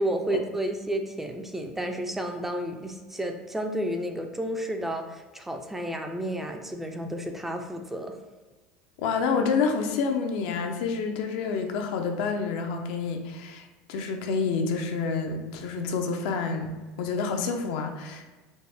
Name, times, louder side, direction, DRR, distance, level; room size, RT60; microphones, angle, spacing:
voice 1, 0.0-8.2, right 1 dB, 5° right, 5 dB, 0.4 m, -31 dB
voice 2, 9.0-16.7 17.0-18.3, left 5 dB, 75° left, 4 dB, 0.5 m, -28 dB
4.1 x 2.1 x 3.4 m, 1.3 s
supercardioid pair, 115°, 4 cm